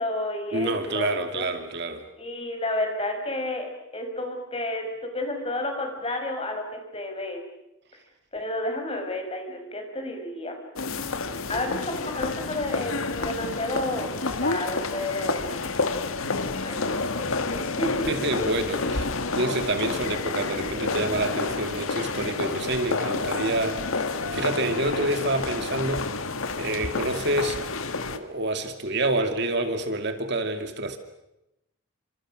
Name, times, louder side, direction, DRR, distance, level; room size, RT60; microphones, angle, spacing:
voice 1, 0.0-1.5 2.1-7.4 8.3-10.6 11.5-15.5 16.6-18.1, left 1 dB, 30° left, 4 dB, 5.4 m, -31 dB
voice 2, 0.5-2.0 18.1-19.1 19.3-24.1 24.3-26.1 26.6-27.6 28.1-31.0, right 2 dB, 55° right, 7 dB, 2.4 m, -27 dB
sound 1, 10.8-28.2, left 3 dB, 85° left, 1.8 m, -29 dB
30.0 x 26.5 x 6.4 m, 0.88 s
head